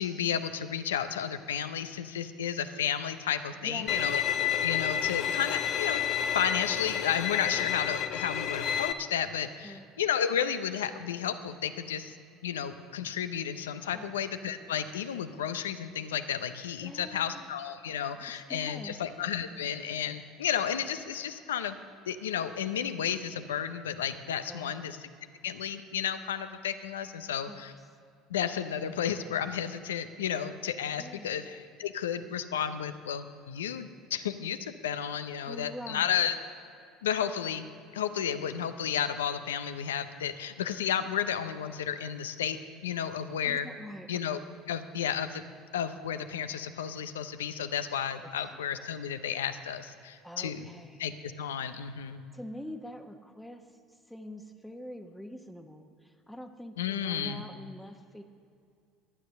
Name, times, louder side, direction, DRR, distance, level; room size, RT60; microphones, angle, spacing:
voice 1, 0.0-6.0 6.3-12.2 12.4-21.8 22.1-25.0 25.4-27.7 28.3-36.3 37.0-37.7 37.9-42.6 42.8-43.7 44.1-44.4 44.7-45.4 45.7-50.7 51.0-52.2 56.8-57.4, left 8 dB, 90° left, 11 dB, 0.6 m, -32 dB
voice 2, 3.5-3.9 9.6-9.9 13.9-14.1 16.8-17.5 18.2-19.0 24.5-24.8 27.5-27.6 31.0-31.4 35.5-36.4 43.4-44.4 48.2-48.6 50.2-51.0 52.3-58.2, equal, ahead, 3 dB, 1.0 m, -45 dB
Bowed string instrument, 3.9-8.9, left 9 dB, 50° left, 0.7 m, -30 dB
12.5 x 9.5 x 6.5 m, 2.4 s
hypercardioid pair, 75°, 0 cm